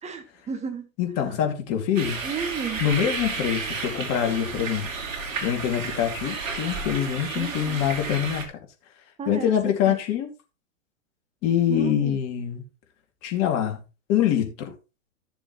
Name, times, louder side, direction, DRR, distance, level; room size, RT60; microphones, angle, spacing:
voice 1, 0.0-0.9 2.2-2.8 7.3-7.9 9.2-9.5 9.9-10.0 11.7-12.2, right 6 dB, 15° right, 1.6 m, -33 dB
voice 2, 1.0-2.2 2.8-4.9 5.4-8.5 9.3-10.3 11.4-12.6 13.2-13.8 14.1-14.7, left 9 dB, 40° left, 2.6 m, -24 dB
sound 1, 2.0-8.5, right 4 dB, 75° right, 3.0 m, -32 dB
14.0 x 7.0 x 3.1 m
hypercardioid pair, 120°, 40 cm